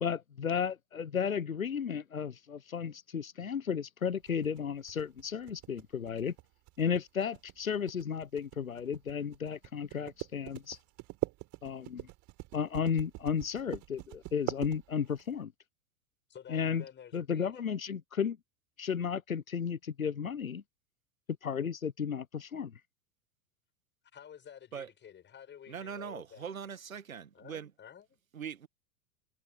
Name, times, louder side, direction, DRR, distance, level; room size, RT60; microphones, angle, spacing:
voice 1, 0.0-6.3 6.8-10.8 11.6-12.1 12.5-15.5 16.5-16.8 17.1-18.4 18.8-20.6 21.4-22.7, left 7 dB, 90° left, 0.9 m, -34 dB
sound 1, 4.3-15.3, right 20 dB, 45° right, 5.4 m, -42 dB
voice 2, 16.3-17.6 24.1-26.5 27.3-28.2, left 9 dB, 25° left, 7.4 m, -51 dB
voice 3, 25.7-27.7 28.3-28.7, right 7 dB, 85° right, 1.6 m, -41 dB
figure-of-eight pair, 90°, 40 cm